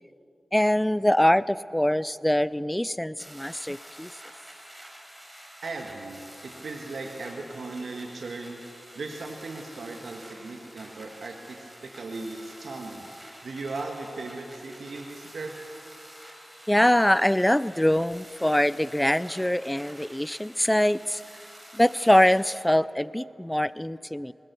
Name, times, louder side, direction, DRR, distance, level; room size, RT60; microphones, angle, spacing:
voice 1, 0.5-4.1 16.7-21.2 21.7-24.3, left 1 dB, 10° left, 18 dB, 0.4 m, -23 dB
sound 1, 3.2-22.6, equal, 15° right, 4.5 m, -48 dB
voice 2, 5.6-6.2 6.6-8.6 8.9-15.5, right 3 dB, 85° right, 2 dB, 1.5 m, -37 dB
20.5 x 20.0 x 6.8 m, 2.8 s
wide cardioid pair, 75°, 0 cm